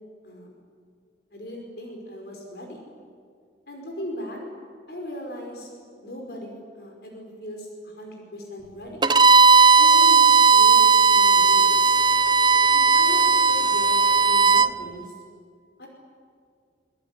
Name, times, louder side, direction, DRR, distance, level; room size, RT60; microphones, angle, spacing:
voice 1, 1.3-2.8 3.7-4.4 4.9-5.7 6.0-9.1 9.8-11.8 12.7-15.1 15.8-15.9, equal, 65° left, 1 dB, 5.3 m, -38 dB
Bowed string instrument, 9.0-14.7, right 4 dB, 25° right, 0.6 m, -16 dB
24.0 x 22.0 x 9.9 m, 2.1 s
head